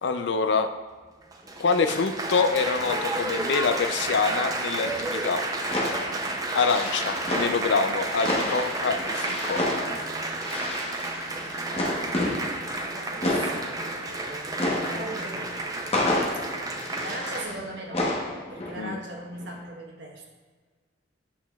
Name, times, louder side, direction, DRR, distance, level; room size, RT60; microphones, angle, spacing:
voice 1, 0.0-0.7 1.6-5.4 6.5-9.6 18.8-19.0, left 4 dB, 65° left, 8 dB, 0.4 m, -25 dB
Applause, 1.2-17.4, right 2 dB, 20° right, 0.5 m, -31 dB
sound 1, 1.5-1.6 1.8-4.4 4.8-19.1 19.3-19.6, left 1 dB, 30° left, 1.0 m, -31 dB
voice 2, 11.2-15.8 16.3-16.7 17.0-18.1 18.5-20.2, right 1 dB, 65° right, -1 dB, 1.2 m, -40 dB
8.4 x 5.9 x 2.3 m, 1.5 s
head